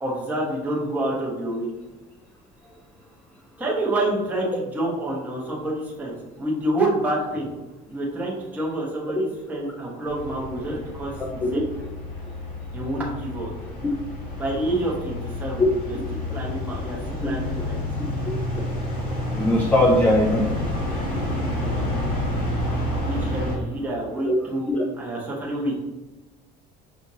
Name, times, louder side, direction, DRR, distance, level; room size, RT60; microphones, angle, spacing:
voice 1, 0.0-1.7 3.6-7.5 7.9-11.6 12.7-13.5 14.4-16.0 16.3-17.8 23.0-24.7 25.0-25.8, right 1 dB, 10° right, -5 dB, 0.9 m, -28 dB
sound 1, 10.1-23.5, left 1 dB, 45° left, 1.4 m, -29 dB
voice 2, 19.3-20.4 24.2-24.4 24.7-24.8, left 1 dB, 10° left, 0 dB, 0.3 m, -20 dB
6.0 x 2.5 x 2.7 m, 1.1 s
cardioid pair, 165°, 20 cm